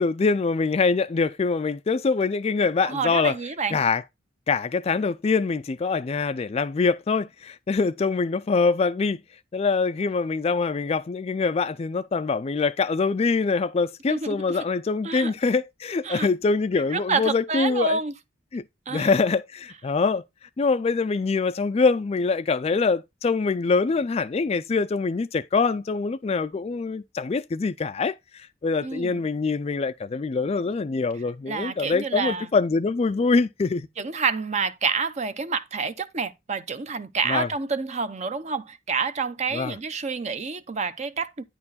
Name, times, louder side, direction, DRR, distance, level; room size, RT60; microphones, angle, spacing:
voice 1, 0.0-3.4 3.7-4.0 4.5-9.2 9.5-18.0 18.5-18.6 18.9-20.2 20.6-33.9 37.3-37.5 39.5-39.7, left 4 dB, 35° left, 0.4 m, -24 dB
voice 2, 2.8-3.8 14.1-14.6 15.0-15.3 16.0-16.3 16.9-18.1 18.9-19.1 28.8-29.2 31.5-32.5 34.0-41.4, right 4 dB, 35° right, 0.7 m, -28 dB
9.5 x 4.4 x 4.1 m
head